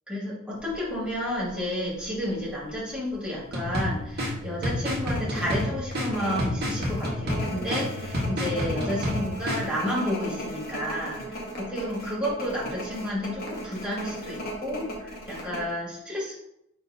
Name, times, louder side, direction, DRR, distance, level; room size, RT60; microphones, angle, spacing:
voice 1, 0.1-16.4, equal, 5° right, -8 dB, 2.5 m, -31 dB
sound 1, 0.7-0.9 1.4-1.5 1.8-2.7 3.1-3.2 3.6-3.8 4.2-4.3 4.9-15.7, equal, 50° left, 1.6 m, -36 dB
sound 2, 3.5-9.6, left 1 dB, 55° right, 1.9 m, -30 dB
9.7 x 3.5 x 2.9 m, 0.81 s
head